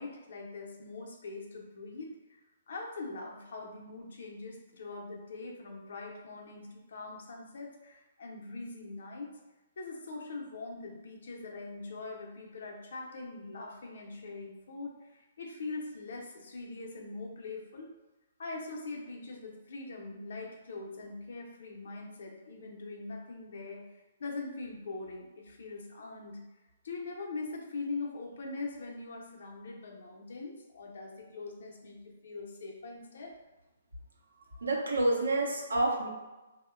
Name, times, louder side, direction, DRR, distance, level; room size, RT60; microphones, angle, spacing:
voice 1, 0.0-2.1 2.7-9.3 9.8-14.9 15.4-17.9 18.4-23.8 24.2-26.4 26.8-33.3, left 3 dB, 70° left, 0 dB, 0.5 m, -42 dB
voice 2, 34.3-36.1, right 2 dB, 85° right, -1 dB, 0.6 m, -29 dB
2.8 x 2.1 x 2.2 m, 1.1 s
hypercardioid pair, 135°, 0 cm